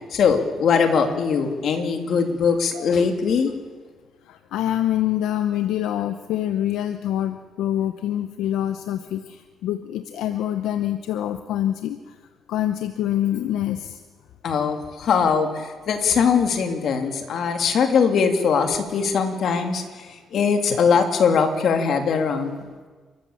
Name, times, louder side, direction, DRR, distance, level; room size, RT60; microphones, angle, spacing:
voice 1, 0.1-3.5 14.4-22.6, left 6 dB, 65° left, 5 dB, 2.9 m, -21 dB
voice 2, 4.2-12.2 12.5-14.0 20.7-20.8, left 12 dB, 90° left, 9 dB, 0.9 m, -26 dB
29.5 x 14.0 x 7.4 m, 1.4 s
cardioid pair, 90°, 0 cm